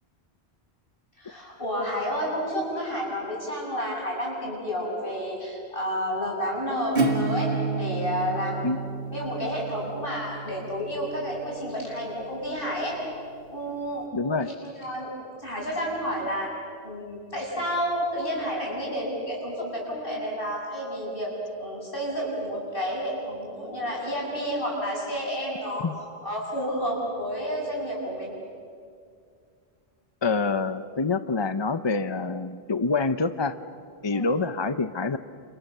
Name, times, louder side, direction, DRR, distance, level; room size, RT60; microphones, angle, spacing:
voice 1, 1.2-8.7 9.1-13.0 13.5-14.1 14.4-14.5 14.8-15.1 15.4-16.5 16.8-21.3 21.6-25.9 26.2-28.3 34.1-34.3, equal, 55° left, -3 dB, 8.3 m, -30 dB
Acoustic guitar / Strum, 6.9-12.4, right 3 dB, 60° right, 2.1 m, -30 dB
voice 2, 14.1-14.5 25.8-25.9 30.2-33.6 34.0-35.2, left 4 dB, 30° left, 11 dB, 0.6 m, -26 dB
30.0 x 28.0 x 6.7 m, 2.2 s
omnidirectional pair, 1.1 m